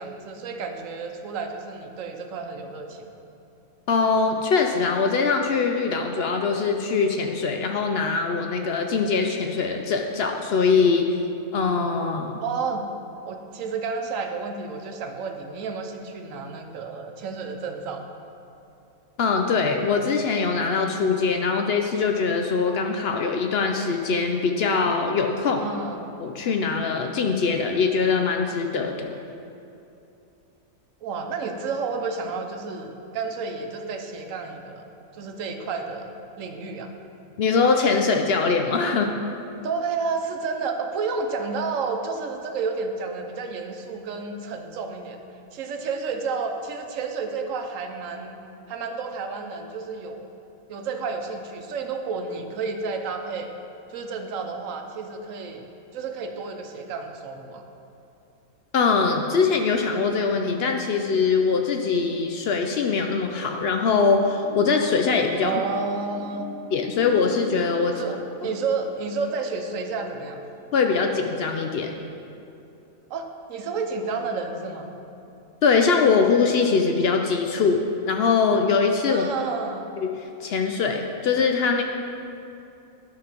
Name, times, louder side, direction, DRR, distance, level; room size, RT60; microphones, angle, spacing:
voice 1, 0.0-3.1 12.4-12.9 13.2-18.1 25.6-26.1 31.0-34.9 35.1-36.9 39.6-45.2 45.5-48.4 48.7-50.3 50.7-53.5 53.9-55.7 55.9-57.6 65.4-66.5 67.8-70.4 73.1-74.9 79.1-79.9, right 4 dB, 70° right, 5 dB, 1.1 m, -31 dB
voice 2, 3.9-11.1 11.5-12.4 19.2-25.7 26.2-29.1 37.4-39.1 58.7-65.5 66.7-67.9 70.7-71.9 75.6-79.3 80.0-81.8, left 5 dB, 65° left, 4 dB, 0.6 m, -22 dB
sound 1, 60.6-61.4 64.0-71.8, left 4 dB, 45° left, 2.0 m, -42 dB
10.5 x 3.9 x 5.8 m, 2.8 s
omnidirectional pair, 1.5 m